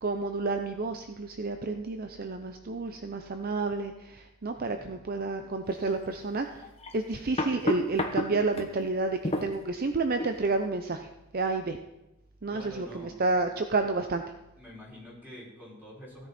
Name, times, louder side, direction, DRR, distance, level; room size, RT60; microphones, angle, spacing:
voice 1, 0.0-6.7 6.9-11.8 12.4-14.2, right 3 dB, 45° right, 7 dB, 0.6 m, -30 dB
voice 2, 4.6-4.9 12.5-13.1 14.6-16.3, equal, 10° right, -6 dB, 5.3 m, -47 dB
sound 1, 5.8-5.9 6.6-8.7 9.2-9.6 10.2-10.3, left 1 dB, 30° left, 1.2 m, -30 dB
16.0 x 10.5 x 4.3 m, 0.96 s
head